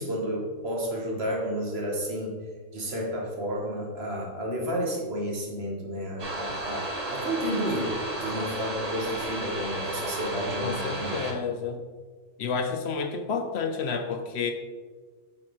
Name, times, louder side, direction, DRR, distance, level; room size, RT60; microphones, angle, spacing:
voice 1, 0.0-2.4 2.7-11.3, equal, 55° right, -1 dB, 1.2 m, -31 dB
sound 1, 6.2-11.3, right 2 dB, 35° right, 0.8 m, -33 dB
voice 2, 10.6-11.8 12.4-14.5, left 5 dB, 65° left, 6 dB, 0.7 m, -30 dB
8.5 x 4.2 x 3.0 m, 1.4 s
omnidirectional pair, 1.4 m